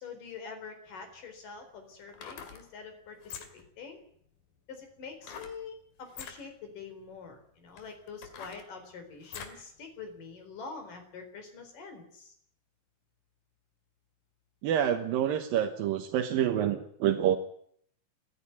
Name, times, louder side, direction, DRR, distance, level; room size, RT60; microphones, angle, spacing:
voice 1, 0.0-4.0 4.7-12.3, left 5 dB, 65° left, 6 dB, 5.7 m, -45 dB
sound 1, 0.9-1.0 2.0-2.6 3.2-3.7 5.2-5.6 6.1-6.4 7.1-7.2 7.7-9.6 10.1-10.2, left 7 dB, 80° left, 3.9 m, -45 dB
voice 2, 14.6-17.4, right 10 dB, 75° right, 4 dB, 2.9 m, -27 dB
29.5 x 10.5 x 9.8 m, 0.66 s
omnidirectional pair, 4.1 m